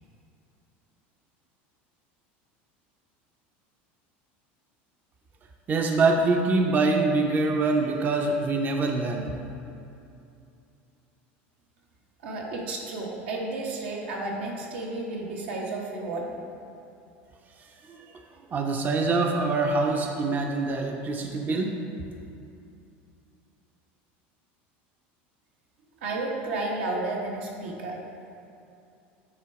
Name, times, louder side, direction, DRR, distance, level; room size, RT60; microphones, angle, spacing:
voice 1, 5.7-9.3 17.6-18.2 18.5-21.7, right 3 dB, 30° right, 2 dB, 0.5 m, -25 dB
voice 2, 12.2-16.4 26.0-28.0, right 2 dB, 85° right, -2 dB, 1.2 m, -32 dB
8.7 x 3.3 x 4.7 m, 2.7 s
supercardioid pair, 110°, 6 cm